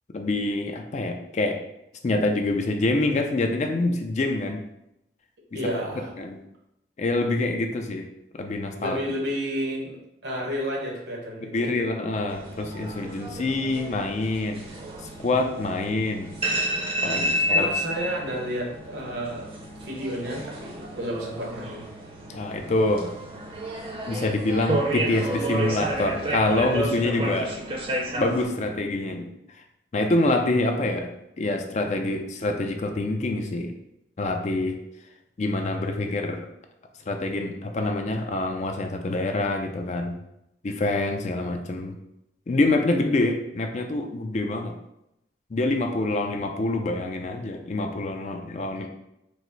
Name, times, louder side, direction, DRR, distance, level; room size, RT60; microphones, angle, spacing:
voice 1, 0.1-1.6 2.0-4.6 6.2-6.4 7.0-8.1 8.3-9.0 11.4-14.6 15.2-16.3 17.0-17.7 22.3-23.1 24.1-27.5 28.2-29.3 29.9-31.1 31.4-33.7 34.2-34.8 35.4-36.4 37.1-40.1 40.6-42.0 42.5-44.7 45.5-48.9, left 2 dB, 40° left, 4 dB, 0.4 m, -26 dB
voice 2, 5.5-6.1 8.8-10.0 10.2-11.9 17.3-19.5 19.8-21.9, equal, 75° right, -1 dB, 1.1 m, -31 dB
sound 1, 12.3-28.5, right 1 dB, 35° right, 0.6 m, -31 dB
4.6 x 2.0 x 3.9 m, 0.84 s
head